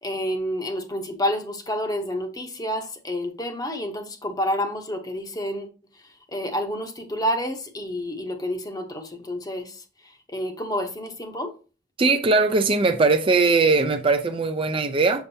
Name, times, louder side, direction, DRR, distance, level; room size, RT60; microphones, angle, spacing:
voice 1, 0.0-5.7 6.3-11.5, equal, 20° left, 0.8 m, -29 dB
voice 2, 12.0-15.2, right 3 dB, 30° right, 0.4 m, -20 dB
7.0 x 6.5 x 2.7 m
head